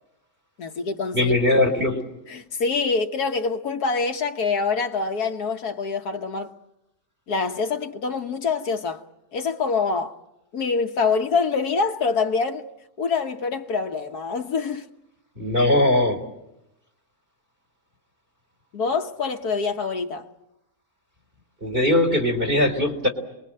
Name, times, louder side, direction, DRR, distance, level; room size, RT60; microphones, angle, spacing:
voice 1, 0.6-1.3 2.3-6.5 7.3-9.0 9.3-10.2 10.5-12.7 13.0-14.9 18.7-20.3, left 4 dB, 75° left, 1.7 m, -25 dB
voice 2, 1.1-2.0 15.4-16.2 21.6-23.1, left 1 dB, 35° right, 3.7 m, -20 dB
28.0 x 22.0 x 7.7 m
omnidirectional pair, 1.7 m